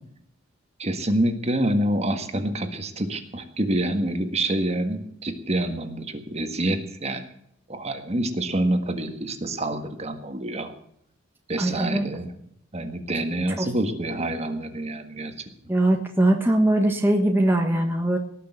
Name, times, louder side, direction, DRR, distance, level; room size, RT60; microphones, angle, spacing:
voice 1, 0.8-7.2 7.7-10.7 11.5-12.3 12.7-15.7, right 1 dB, 30° right, 7 dB, 1.7 m, -27 dB
voice 2, 11.6-12.0 13.6-13.7 15.7-18.2, right 1 dB, 10° right, 2 dB, 1.4 m, -21 dB
19.0 x 6.7 x 8.0 m, 0.71 s
head